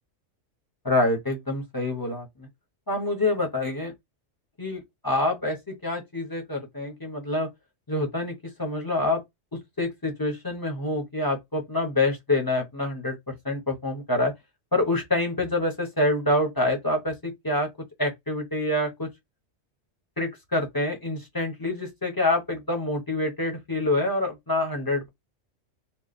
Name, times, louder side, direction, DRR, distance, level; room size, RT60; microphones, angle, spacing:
voice 1, 0.8-2.5 2.9-3.9 4.6-7.5 7.9-9.2 9.8-13.2 13.4-14.3 14.7-17.7 18.0-19.1 20.2-25.1, left 2 dB, 20° left, 1.0 m, -26 dB
3.2 x 2.3 x 4.1 m
omnidirectional pair, 1.3 m